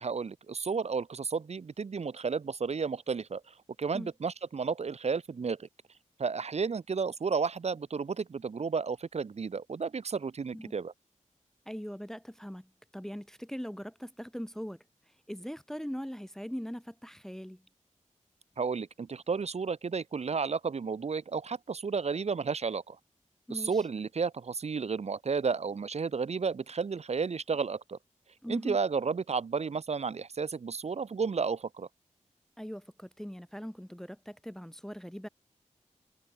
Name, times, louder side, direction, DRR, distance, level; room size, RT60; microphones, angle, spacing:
voice 1, 0.0-5.7 6.2-10.9 18.6-23.0 23.5-28.0 28.5-31.9, right 5 dB, 55° right, 0.8 m, -32 dB
voice 2, 11.7-14.8 15.3-17.6 23.5-23.8 28.4-28.8 32.6-35.3, equal, 5° left, 0.7 m, -41 dB
wide cardioid pair, 110°, 13 cm